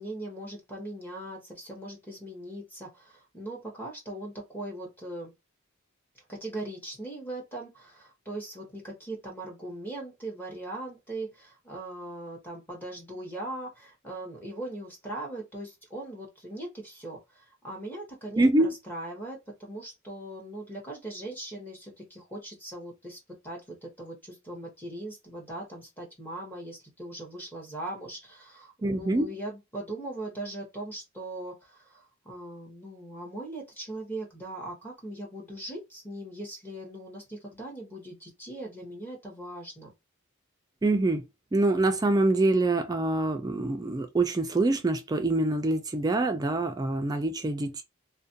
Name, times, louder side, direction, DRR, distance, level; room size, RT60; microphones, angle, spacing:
voice 1, 0.0-5.3 6.3-39.9, right 1 dB, 10° left, 0.9 m, -40 dB
voice 2, 18.4-18.7 28.8-29.3 40.8-41.2 41.5-47.8, right 2 dB, 20° right, 0.3 m, -25 dB
2.4 x 2.2 x 2.6 m
head